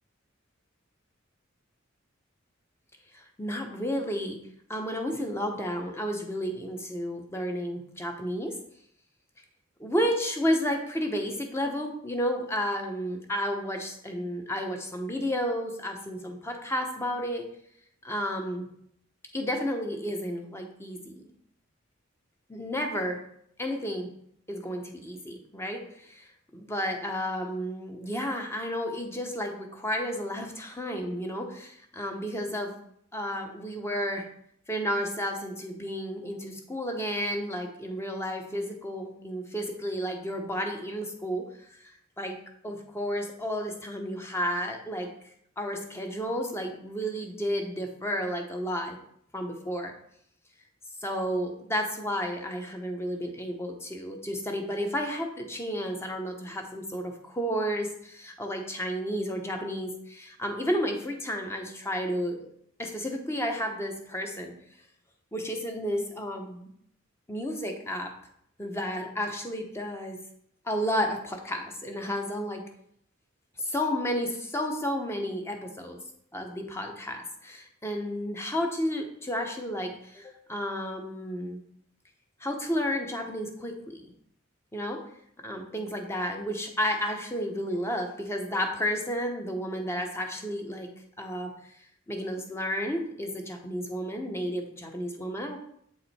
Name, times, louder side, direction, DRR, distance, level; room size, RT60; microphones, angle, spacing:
voice 1, 3.1-4.4 4.7-8.5 9.8-17.5 18.0-18.7 19.3-21.3 22.5-23.2 23.6-24.1 24.5-32.8 33.1-34.3 34.7-41.4 42.2-42.4 42.6-45.1 45.6-49.0 49.3-49.9 51.0-62.5 62.8-64.5 65.3-66.7 67.3-68.1 68.6-70.2 70.6-72.6 73.6-76.0 76.3-81.6 82.4-84.1 84.7-85.0 85.4-90.9 91.2-91.5 92.1-95.6, equal, 15° left, 3 dB, 1.0 m, -32 dB
8.1 x 4.9 x 4.3 m, 0.69 s
head